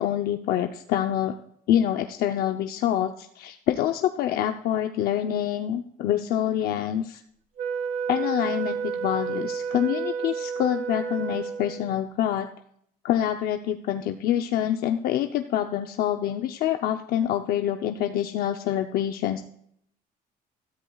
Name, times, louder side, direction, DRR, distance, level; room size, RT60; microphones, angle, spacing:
voice 1, 0.0-1.3 1.7-7.2 8.1-12.5 13.0-19.4, left 11 dB, 75° left, 5 dB, 0.7 m, -26 dB
Wind instrument woodwind instrument, 7.6-12.0, right 6 dB, 55° right, 0.7 m, -31 dB
16.5 x 13.5 x 2.4 m, 0.68 s
cardioid pair, 165°, 16 cm